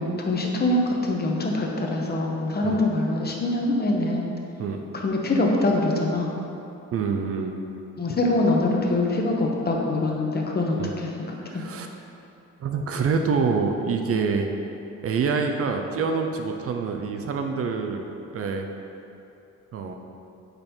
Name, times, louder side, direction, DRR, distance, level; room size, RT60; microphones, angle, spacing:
voice 1, 0.0-4.3 5.0-6.3 8.0-11.3 11.5-11.6, left 2 dB, 30° left, 0 dB, 0.9 m, -24 dB
voice 2, 6.9-7.5 10.8-10.9 11.4-11.9 12.6-14.5 15.0-18.0 18.3-18.7 19.7-19.9, right 5 dB, 50° right, 4 dB, 0.5 m, -26 dB
5.4 x 4.1 x 4.3 m, 2.8 s
cardioid pair, 90°, 30 cm